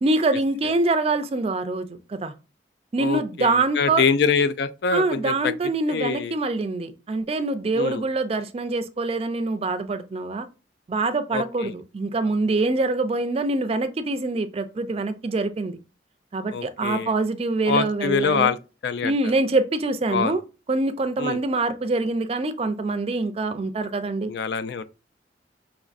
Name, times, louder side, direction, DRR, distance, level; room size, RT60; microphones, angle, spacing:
voice 1, 0.0-2.3 2.9-4.0 4.9-10.5 10.9-15.8 16.3-18.5 19.0-20.4 20.7-24.3, right 3 dB, 35° right, 0.4 m, -25 dB
voice 2, 3.0-5.5 5.9-6.4 7.7-8.1 11.3-11.7 16.5-17.1 17.7-18.6 18.8-19.3 20.1-20.4 21.2-21.4 24.3-24.8, left 5 dB, 65° left, 0.3 m, -25 dB
5.2 x 3.0 x 2.4 m
head